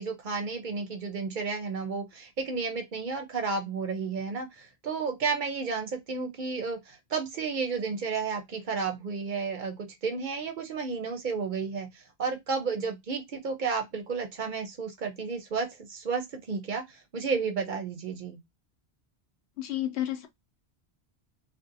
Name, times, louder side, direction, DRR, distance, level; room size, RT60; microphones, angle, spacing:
voice 1, 0.0-11.9 12.2-18.4, right 5 dB, 55° right, 0.7 m, -32 dB
voice 2, 19.6-20.3, left 13 dB, 85° left, 0.9 m, -31 dB
2.6 x 2.0 x 2.5 m
omnidirectional pair, 1.1 m